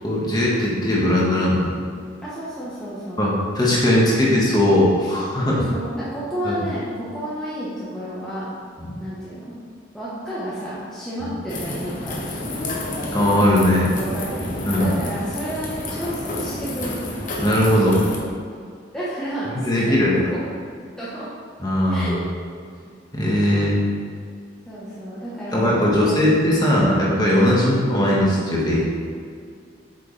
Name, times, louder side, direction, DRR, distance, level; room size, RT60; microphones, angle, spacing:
voice 1, 0.0-1.7 3.2-5.6 6.4-6.6 8.8-8.9 13.1-13.9 14.6-14.9 17.4-18.0 19.5-20.3 21.6-22.1 23.1-23.8 25.5-28.8, left 1 dB, 20° left, -5 dB, 1.6 m, -19 dB
voice 2, 2.2-3.3 5.5-8.5 9.0-9.5 9.9-12.5 14.0-14.4 14.7-17.1 18.9-20.4 21.0-21.3 21.9-22.2 24.7-26.2, equal, 5° left, -10 dB, 1.2 m, -31 dB
sound 1, 11.5-18.2, left 1 dB, 45° left, 1.1 m, -30 dB
8.3 x 6.6 x 3.4 m, 2.1 s
head